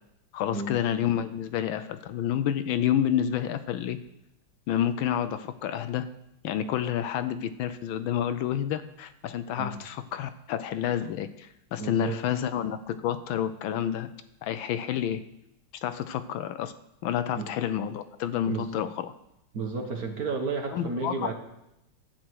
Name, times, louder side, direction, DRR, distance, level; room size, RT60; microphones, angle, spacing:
voice 1, 0.3-4.0 4.7-6.1 6.4-14.1 14.4-15.2 15.8-16.7 17.0-19.1 20.7-21.3, left 10 dB, 75° left, 12 dB, 1.3 m, -29 dB
voice 2, 11.8-12.2 17.4-17.5 18.5-18.7 19.5-21.3, right 4 dB, 50° right, 4 dB, 1.4 m, -32 dB
11.5 x 8.7 x 4.6 m, 0.85 s
omnidirectional pair, 2.3 m